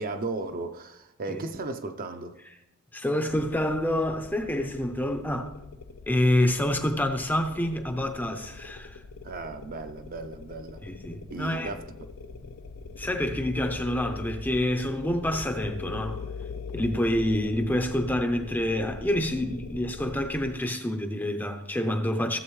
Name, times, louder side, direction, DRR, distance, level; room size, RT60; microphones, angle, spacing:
voice 1, 0.0-2.4 9.2-10.8 11.3-12.1, right 3 dB, 40° right, 0.6 m, -35 dB
voice 2, 2.9-5.5 6.1-9.0 10.8-11.7 13.0-16.2 16.7-22.4, left 1 dB, 10° left, 0.6 m, -27 dB
sound 1, 3.3-20.5, left 4 dB, 80° left, 0.6 m, -42 dB
15.5 x 7.3 x 3.2 m
head